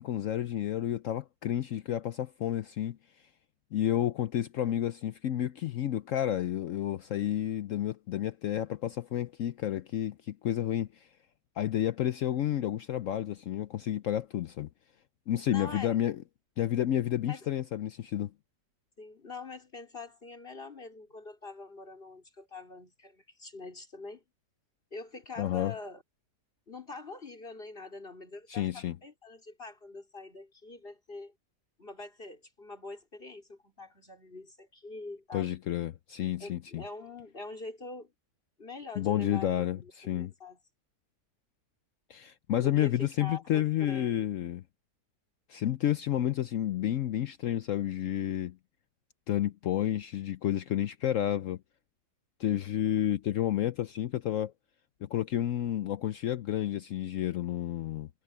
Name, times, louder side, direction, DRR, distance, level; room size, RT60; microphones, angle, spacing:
voice 1, 0.0-3.0 3.7-10.9 11.6-14.7 15.3-16.2 16.6-18.3 25.4-25.7 28.5-28.9 35.3-36.8 39.0-40.3 42.1-44.6 45.5-48.6 49.3-51.6 52.4-54.5 55.0-58.1, left 11 dB, 65° left, 0.9 m, -30 dB
voice 2, 15.5-16.0 17.3-17.5 19.0-24.2 24.9-26.0 26.7-31.3 31.8-35.5 36.4-38.1 38.6-39.9 40.2-40.6 42.6-44.3, left 3 dB, 35° left, 4.6 m, -44 dB
omnidirectional pair, 1.7 m